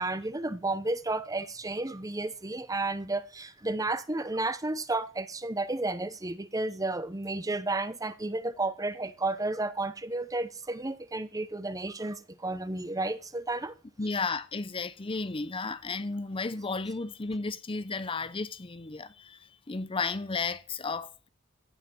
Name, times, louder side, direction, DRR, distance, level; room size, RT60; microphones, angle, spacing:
voice 1, 0.0-13.7, right 2 dB, 15° right, 0.8 m, -32 dB
voice 2, 14.0-21.3, left 4 dB, 25° left, 0.6 m, -33 dB
16.0 x 5.9 x 7.6 m
head